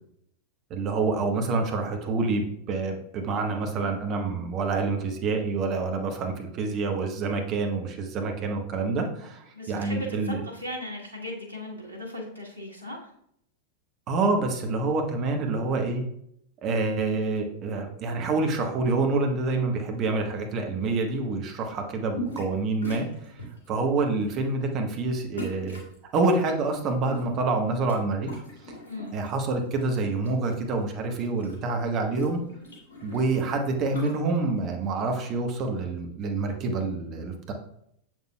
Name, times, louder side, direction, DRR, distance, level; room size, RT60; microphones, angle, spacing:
voice 1, 0.7-10.4 14.1-16.0 16.6-23.3 23.7-25.8 26.1-28.4 29.1-32.4 33.0-37.5, right 3 dB, 35° right, 4 dB, 1.0 m, -27 dB
voice 2, 9.5-13.1 28.8-29.1, left 1 dB, 90° left, -2 dB, 1.1 m, -37 dB
sound 1, 22.1-22.6 22.8-23.7 24.2-24.4 25.4-25.9 26.8-28.0 28.2-29.4 29.8-30.5 30.8-30.9 31.1-34.2, equal, 70° left, 2.5 m, -39 dB
7.0 x 6.1 x 2.2 m, 0.72 s
figure-of-eight pair, 90°, 0 cm